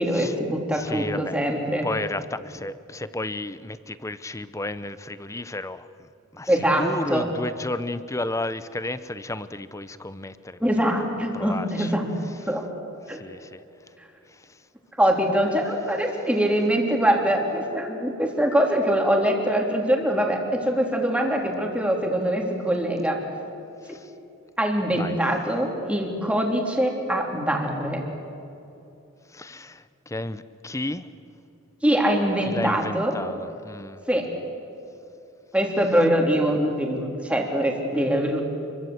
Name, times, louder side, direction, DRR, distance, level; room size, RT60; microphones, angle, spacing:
voice 1, 0.0-1.9 6.5-7.3 10.6-12.1 12.5-12.6 13.1-13.2 15.0-23.2 24.6-28.0 31.8-33.2 34.1-34.3 35.5-38.4, equal, 5° right, 3.5 m, -23 dB
voice 2, 0.7-1.4 1.8-5.9 6.3-6.5 6.8-11.0 11.3-11.9 13.1-13.6 23.9-24.1 24.9-25.2 29.3-31.1 32.5-34.0, left 2 dB, 15° left, 0.8 m, -33 dB
29.5 x 23.5 x 8.1 m
head